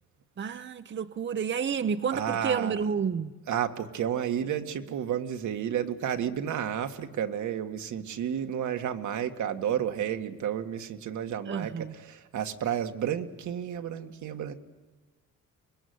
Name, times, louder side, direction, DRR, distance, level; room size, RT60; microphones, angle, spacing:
voice 1, 0.4-3.3 11.5-11.9, right 6 dB, 40° right, 0.9 m, -30 dB
voice 2, 2.1-2.8 3.5-14.5, right 9 dB, 75° right, 1.9 m, -31 dB
25.0 x 21.0 x 9.5 m
cardioid pair, 90°, 30 cm